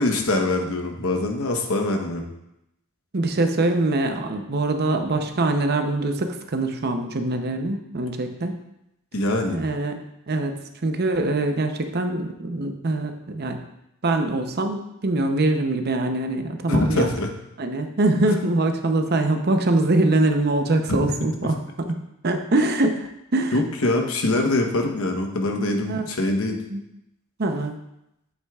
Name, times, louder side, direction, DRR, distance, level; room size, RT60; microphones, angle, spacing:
voice 1, 0.0-2.2 9.1-9.6 16.7-17.3 18.3-18.4 20.9-21.0 23.5-26.6, left 2 dB, 80° left, 3 dB, 1.0 m, -23 dB
voice 2, 3.1-8.6 9.5-10.0 10.3-13.6 14.0-17.1 17.6-23.6 25.6-26.1 26.7-26.8 27.4-27.7, right 2 dB, 50° right, 6 dB, 0.7 m, -23 dB
8.1 x 7.9 x 2.4 m, 0.85 s
head